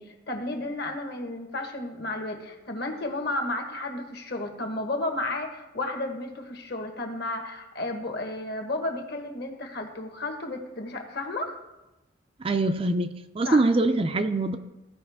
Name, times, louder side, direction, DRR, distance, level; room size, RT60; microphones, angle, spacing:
voice 1, 0.0-11.6 13.4-13.6, left 2 dB, 55° left, 3 dB, 1.3 m, -32 dB
voice 2, 12.4-14.6, right 2 dB, 30° right, 9 dB, 0.4 m, -24 dB
15.5 x 5.2 x 3.5 m, 0.99 s
head